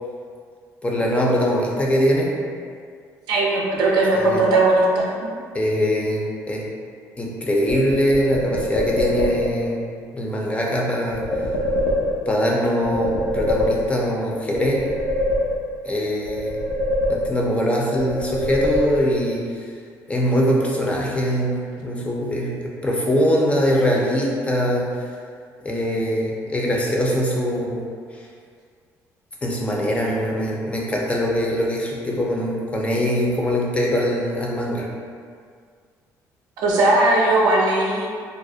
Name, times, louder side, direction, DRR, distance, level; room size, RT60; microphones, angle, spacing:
voice 1, 0.8-2.3 4.1-4.4 5.5-6.6 7.2-9.8 10.1-11.2 12.3-14.9 15.8-16.6 17.1-19.7 20.1-21.6 21.8-22.5 22.8-24.9 25.6-27.8 29.4-34.9, equal, 20° left, -2 dB, 0.5 m, -22 dB
voice 2, 3.3-5.1 36.6-38.1, right 2 dB, 80° right, -3 dB, 0.5 m, -18 dB
sound 1, 7.7-9.7 11.1-12.5 12.8-14.2 14.5-15.9 16.3-17.6 18.0-19.3, left 1 dB, 80° left, 0.4 m, -24 dB
2.3 x 2.0 x 2.6 m, 2.1 s
cardioid pair, 90°, 7 cm